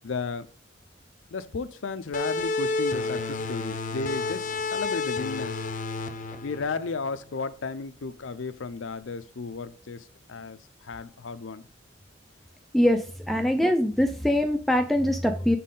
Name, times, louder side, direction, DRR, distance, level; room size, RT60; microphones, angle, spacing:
voice 1, 0.0-0.5 1.3-5.7 6.4-11.6, left 4 dB, 80° left, 0.6 m, -34 dB
sound 1, 2.1-7.4, left 3 dB, 40° left, 0.6 m, -30 dB
voice 2, 12.7-15.6, left 1 dB, ahead, 0.4 m, -23 dB
7.1 x 4.2 x 3.7 m
head